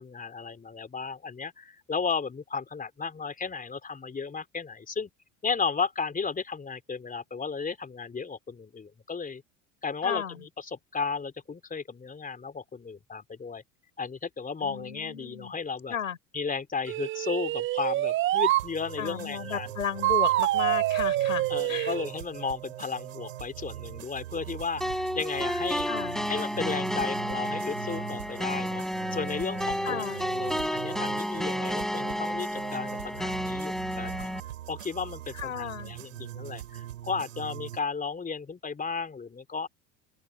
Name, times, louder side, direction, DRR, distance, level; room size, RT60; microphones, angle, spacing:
voice 1, 0.0-5.1 5.4-9.4 9.8-13.6 14.0-16.0 16.3-19.7 21.5-25.9 26.3-28.8 29.1-34.3 34.7-39.7, left 5 dB, 20° left, 3.5 m, -34 dB
voice 2, 10.0-10.4 14.6-15.5 15.9-16.2 19.0-21.9 25.9-26.3 29.8-30.2 35.3-35.9, left 8 dB, 90° left, 6.2 m, -34 dB
sound 1, 16.9-18.7 20.0-22.1, right 15 dB, 30° right, 0.5 m, -26 dB
sound 2, 18.6-37.8, right 12 dB, 80° right, 7.6 m, -42 dB
sound 3, 24.8-34.4, equal, ahead, 4.9 m, -31 dB
open air
hypercardioid pair, 75°, 39 cm